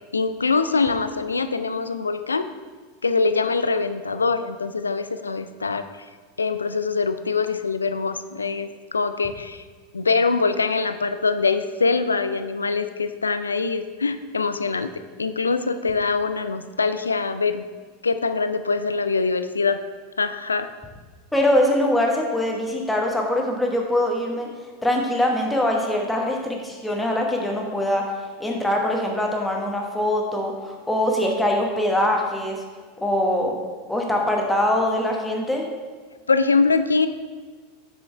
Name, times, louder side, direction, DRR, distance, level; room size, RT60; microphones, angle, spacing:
voice 1, 0.1-2.5 3.0-5.8 6.4-9.6 9.9-14.9 15.2-17.6 18.0-19.8 20.2-20.7 36.3-37.1, left 4 dB, 80° left, 11 dB, 0.3 m, -23 dB
voice 2, 21.3-24.5 24.8-28.1 28.4-32.6 33.0-33.5 33.9-35.6, left 1 dB, 5° left, 0 dB, 1.3 m, -23 dB
7.9 x 6.1 x 3.3 m, 1.4 s
figure-of-eight pair, 85°, 0 cm